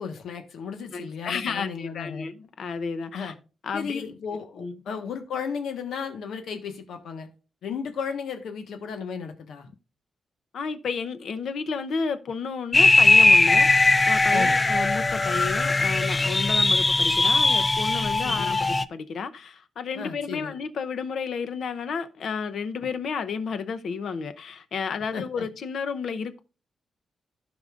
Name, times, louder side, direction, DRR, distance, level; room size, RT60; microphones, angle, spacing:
voice 1, 0.0-2.3 3.1-3.3 3.7-7.3 7.6-9.7 14.3-14.6 18.2-18.5 19.9-20.6 25.1-25.5, left 6 dB, 85° left, 1.3 m, -34 dB
voice 2, 0.9-3.3 3.6-4.1 4.6-4.7 10.5-26.4, left 5 dB, 60° left, 0.8 m, -32 dB
sound 1, 12.7-18.8, left 2 dB, 20° left, 0.3 m, -20 dB
16.0 x 5.3 x 2.5 m
wide cardioid pair, 170°, 0 cm